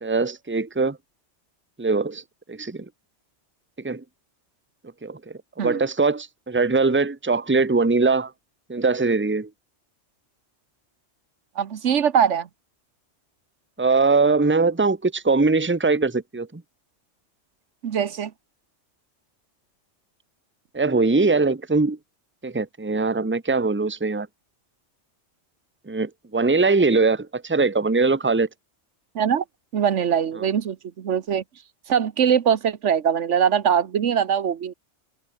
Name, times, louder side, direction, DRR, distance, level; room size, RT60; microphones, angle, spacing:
voice 1, 0.0-1.0 1.8-2.2 2.5-2.8 3.8-4.0 5.0-5.2 5.6-8.3 8.7-9.5 13.8-16.6 20.7-22.0 22.4-24.3 25.9-28.5, right 3 dB, 10° right, 1.0 m, -21 dB
voice 2, 11.6-12.5 17.8-18.3 29.1-29.4 29.7-31.4 31.9-34.7, right 8 dB, 80° right, 1.3 m, -22 dB
omnidirectional pair, 1.2 m